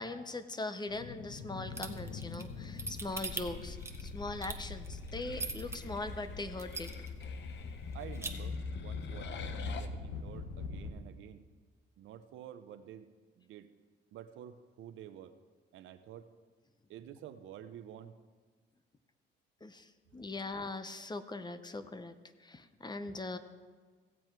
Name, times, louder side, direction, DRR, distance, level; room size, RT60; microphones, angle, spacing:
voice 1, 0.0-6.9 19.6-23.4, left 2 dB, 20° left, 11 dB, 0.8 m, -41 dB
sound 1, 0.9-10.9, left 4 dB, 80° left, 1.2 m, -42 dB
sound 2, 1.7-5.8 6.2-6.3 6.6-7.2 7.6-7.7 7.9-8.3, right 3 dB, 15° right, 1.0 m, -40 dB
sound 3, 3.1-9.9, left 7 dB, 65° left, 0.8 m, -51 dB
voice 2, 7.9-11.4 12.0-13.1 13.4-13.7 14.1-15.3 15.7-16.3 16.9-18.1, right 10 dB, 80° right, 10 dB, 0.7 m, -49 dB
16.5 x 7.8 x 4.6 m, 1.5 s
cardioid pair, 90°, 20 cm